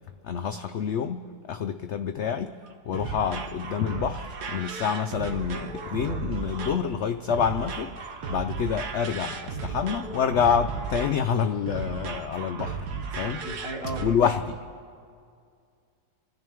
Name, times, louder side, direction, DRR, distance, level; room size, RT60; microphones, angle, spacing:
voice 1, 0.2-2.6 2.8-12.9 13.1-13.4 14.0-14.6, left 7 dB, 75° left, 8 dB, 0.6 m, -27 dB
sound 1, 2.6-14.1, right 5 dB, 80° right, 1.5 m, -35 dB
sound 2, 5.1-8.5, left 4 dB, 35° left, 1.4 m, -50 dB
voice 2, 13.2-14.0, equal, 55° right, -4 dB, 3.3 m, -36 dB
27.0 x 14.0 x 3.5 m, 2.2 s
omnidirectional pair, 1.7 m